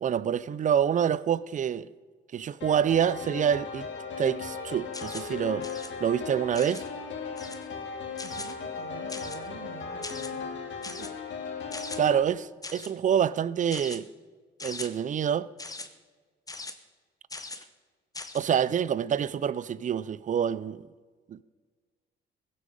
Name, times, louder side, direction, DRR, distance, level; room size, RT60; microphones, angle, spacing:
voice 1, 0.0-1.9 2.3-3.9 4.2-5.7 6.0-6.8 12.0-14.1 14.6-15.5 18.3-20.8 21.3-21.4, right 8 dB, 40° right, 0.4 m, -26 dB
sound 1, 2.6-12.2, left 5 dB, 65° left, 2.1 m, -37 dB
sound 2, 4.9-5.3 5.6-5.9 6.5-6.9 7.4-7.7 8.2-8.5 9.1-9.5 10.0-10.3 10.8-11.1 11.7-12.0 12.6-12.9 13.7-14.0 14.6-14.9 15.6-15.9 16.5-16.7 17.3-17.6 18.1-18.4, left 3 dB, 20° left, 1.0 m, -40 dB
voice 2, 8.2-10.5 10.8-11.2, right 6 dB, 90° right, 1.7 m, -47 dB
16.0 x 8.5 x 5.3 m
cardioid pair, 90°, 20 cm